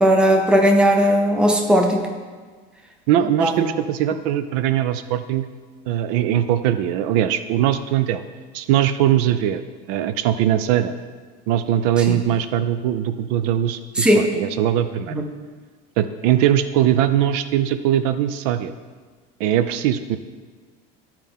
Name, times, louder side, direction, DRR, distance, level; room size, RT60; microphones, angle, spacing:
voice 1, 0.0-2.1 3.4-3.6 14.0-14.2 15.1-15.2, equal, 5° right, 2 dB, 0.5 m, -16 dB
voice 2, 3.1-5.5 5.9-8.2 8.5-9.6 9.9-10.9 11.5-15.1 16.0-18.7 19.4-20.2, right 11 dB, 65° right, 11 dB, 0.4 m, -20 dB
12.0 x 4.4 x 3.6 m, 1.4 s
cardioid pair, 170°, 21 cm